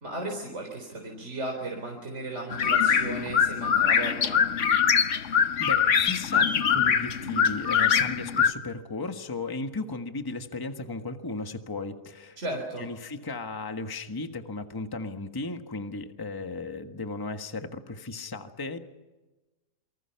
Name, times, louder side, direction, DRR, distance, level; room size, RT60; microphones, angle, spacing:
voice 1, 0.0-4.4 12.4-12.9, right 2 dB, 40° right, 1 dB, 4.4 m, -35 dB
sound 1, 2.5-8.5, left 7 dB, 50° left, 1.2 m, -23 dB
voice 2, 5.2-12.4 12.8-18.8, left 3 dB, 15° left, 6 dB, 1.4 m, -36 dB
28.5 x 24.5 x 5.9 m, 1.1 s
omnidirectional pair, 1.9 m